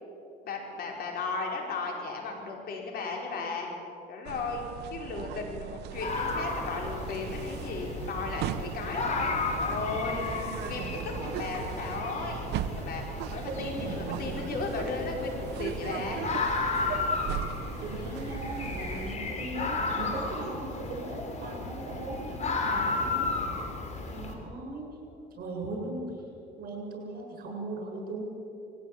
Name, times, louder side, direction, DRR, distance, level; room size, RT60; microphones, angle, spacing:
voice 1, 0.4-3.7 4.1-4.6 4.9-10.3 10.6-13.0 13.3-16.2 25.3-25.4, left 4 dB, 65° left, 1 dB, 5.1 m, -35 dB
sound 1, 4.2-19.2, right 11 dB, 80° right, 0.8 m, -39 dB
sound 2, 6.0-24.3, left 3 dB, 45° left, 3.7 m, -34 dB
voice 2, 13.7-14.3 17.6-23.3 24.1-24.9 25.4-26.1 26.6-28.3, right 2 dB, 60° right, 1 dB, 7.4 m, -38 dB
20.5 x 16.0 x 8.8 m, 2.6 s
cardioid pair, 110°, 17 cm